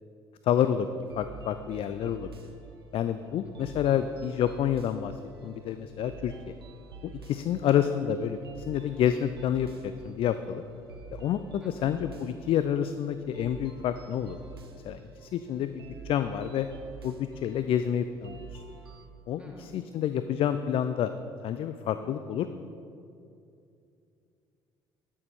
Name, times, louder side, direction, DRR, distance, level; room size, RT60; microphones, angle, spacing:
voice 1, 0.4-0.9 1.2-2.3 2.9-5.1 5.4-6.5 7.0-10.6 11.1-14.4 14.7-16.7 17.0-18.6 19.3-21.1 21.4-22.6, left 9 dB, 50° left, 11 dB, 0.4 m, -29 dB
sound 1, 1.0-19.1, right 4 dB, 90° right, 0.6 m, -48 dB
voice 2, 11.6-11.9 19.4-19.7, equal, 10° right, -1 dB, 2.6 m, -50 dB
13.0 x 6.7 x 4.3 m, 2.6 s
figure-of-eight pair, 55°, 12 cm